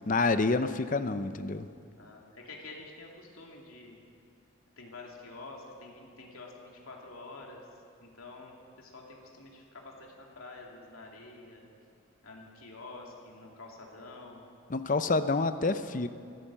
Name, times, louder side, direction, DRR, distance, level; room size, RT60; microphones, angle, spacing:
voice 1, 0.1-1.7 14.7-16.1, left 3 dB, 35° left, 11 dB, 0.6 m, -28 dB
voice 2, 2.0-4.0 4.8-7.6 8.0-11.7 12.2-14.4, left 3 dB, 80° left, -1 dB, 2.7 m, -48 dB
14.5 x 13.0 x 7.5 m, 2.4 s
head